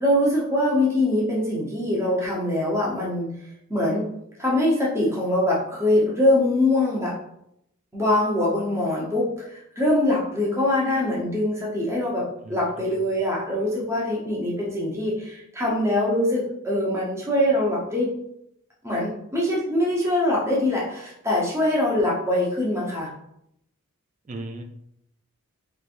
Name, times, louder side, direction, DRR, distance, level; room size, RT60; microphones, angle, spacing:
voice 1, 0.0-3.3 3.7-4.1 4.4-7.2 7.9-18.1 18.8-23.1, left 1 dB, 10° right, -5 dB, 0.8 m, -23 dB
voice 2, 12.4-13.0 24.3-24.6, right 2 dB, 35° right, 5 dB, 0.4 m, -37 dB
3.2 x 3.2 x 2.5 m, 0.77 s
head